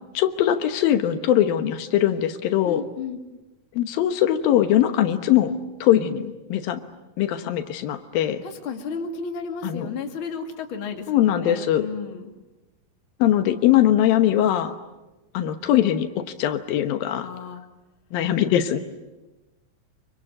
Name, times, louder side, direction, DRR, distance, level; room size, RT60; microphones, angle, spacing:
voice 1, 0.1-2.8 3.8-5.5 5.8-6.8 7.2-8.4 9.6-9.9 11.1-11.9 13.2-14.7 15.3-17.3 18.1-18.8, left 11 dB, 85° left, 8 dB, 3.0 m, -21 dB
voice 2, 2.6-3.2 8.4-12.3 17.2-17.6, left 5 dB, 40° left, 4 dB, 2.8 m, -33 dB
27.0 x 24.5 x 8.8 m, 1.1 s
omnidirectional pair, 4.0 m